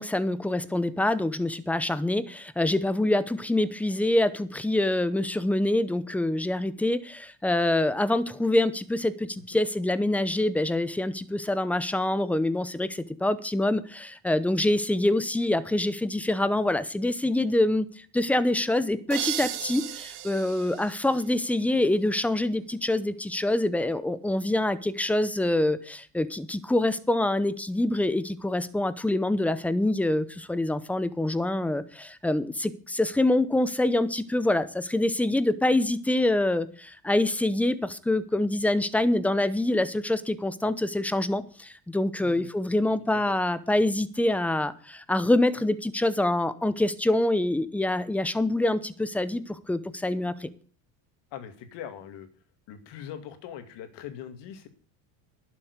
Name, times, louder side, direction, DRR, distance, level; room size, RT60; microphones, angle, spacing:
voice 1, 0.0-17.9 18.1-50.5, left 1 dB, 5° left, 15 dB, 0.6 m, -25 dB
sound 1, 19.1-21.8, right 12 dB, 60° right, 2.1 m, -36 dB
voice 2, 51.3-52.3 52.7-54.7, left 9 dB, 60° left, 9 dB, 2.4 m, -41 dB
11.5 x 7.3 x 8.1 m, 0.42 s
cardioid pair, 135°, 48 cm